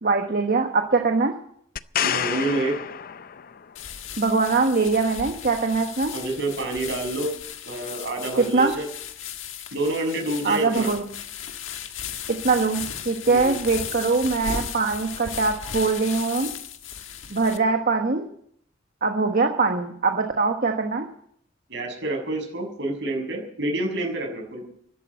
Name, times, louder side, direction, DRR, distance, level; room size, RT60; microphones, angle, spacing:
voice 1, 0.0-1.3 4.2-6.1 8.4-8.7 10.4-11.0 12.3-16.5 17.3-18.2 19.0-21.1, right 4 dB, 50° right, 4 dB, 1.4 m, -22 dB
sound 1, 1.8-3.7 7.4-7.5, left 9 dB, 50° left, 0.5 m, -28 dB
voice 2, 2.0-2.8 6.1-7.3 7.7-8.9 9.7-10.9 13.3-13.6 21.7-24.7, right 2 dB, 65° right, 2 dB, 6.7 m, -28 dB
sound 2, 3.8-17.6, left 8 dB, 80° left, 1.5 m, -36 dB
13.5 x 12.5 x 8.0 m, 0.65 s
head